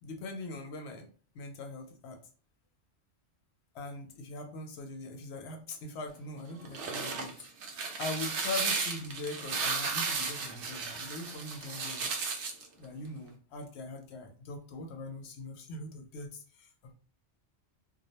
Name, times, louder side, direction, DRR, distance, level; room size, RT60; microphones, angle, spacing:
voice 1, 0.0-1.1 1.3-2.2 3.7-7.3 8.0-12.1 12.8-16.9, left 2 dB, 70° left, 4 dB, 0.8 m, -41 dB
sound 1, 6.5-12.7, right 4 dB, 80° right, 0.9 m, -34 dB
2.4 x 2.0 x 2.7 m, 0.41 s
omnidirectional pair, 1.2 m